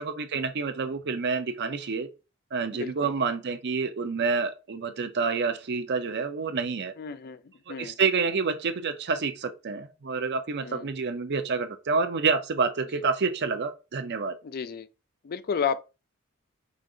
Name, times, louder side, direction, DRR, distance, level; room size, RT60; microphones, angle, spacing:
voice 1, 0.0-2.1 2.5-6.9 7.7-14.4, right 4 dB, 50° right, 0.6 m, -28 dB
voice 2, 7.0-7.4 7.7-7.9 10.6-10.9 14.4-14.9 15.2-15.8, left 6 dB, 45° left, 0.4 m, -31 dB
5.1 x 2.5 x 3.8 m
head